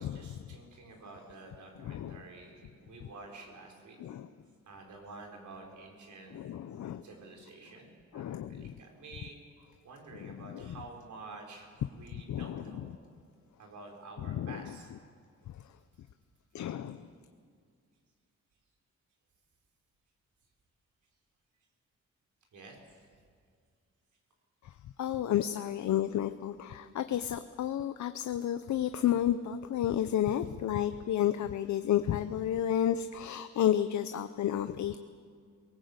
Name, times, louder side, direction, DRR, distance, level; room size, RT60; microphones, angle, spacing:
voice 1, 0.0-4.0 4.7-6.6 7.0-9.4 9.8-12.8 13.6-14.9 22.5-23.0 25.1-25.2 25.6-25.7 30.3-30.5, right 3 dB, 75° right, 2 dB, 4.5 m, -50 dB
voice 2, 6.3-7.0 8.1-8.7 10.2-10.3 12.3-12.6 14.3-14.6 16.5-17.0 25.0-35.0, left 10 dB, 70° left, 10 dB, 0.7 m, -31 dB
22.0 x 19.0 x 8.1 m, 2.1 s
wide cardioid pair, 145°, 30 cm